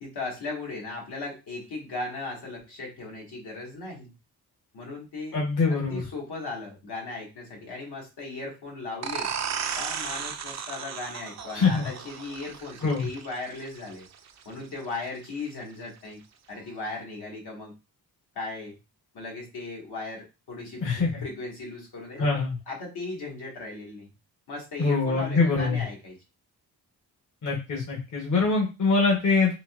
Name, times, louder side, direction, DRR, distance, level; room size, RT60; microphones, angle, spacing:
voice 1, 0.0-4.1 4.7-5.4 5.7-9.3 9.8-14.1 14.4-16.2 16.5-17.7 18.3-18.8 19.1-22.4 22.7-24.1 24.5-26.2, left 3 dB, 75° left, -2 dB, 1.7 m, -37 dB
voice 2, 5.3-6.0 11.5-11.9 12.8-13.1 20.8-21.2 22.2-22.6 24.8-25.8 27.4-29.5, left 4 dB, 50° left, -2 dB, 1.1 m, -24 dB
sound 1, 9.0-14.4, right 7 dB, 45° right, 0.4 m, -35 dB
3.9 x 2.7 x 2.4 m, 0.27 s
cardioid pair, 95°, 39 cm